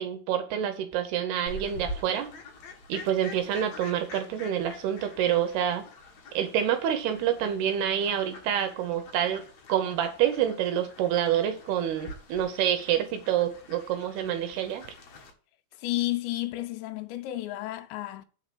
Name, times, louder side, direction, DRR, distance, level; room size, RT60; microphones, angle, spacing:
voice 1, 0.0-2.3 2.9-5.9 6.3-9.4 9.7-14.9, right 10 dB, 75° right, 2.7 m, -27 dB
Fowl, 1.5-15.3, left 1 dB, 60° left, 1.8 m, -45 dB
voice 2, 15.8-18.3, left 16 dB, 85° left, 2.9 m, -31 dB
8.1 x 4.9 x 6.6 m
omnidirectional pair, 5.2 m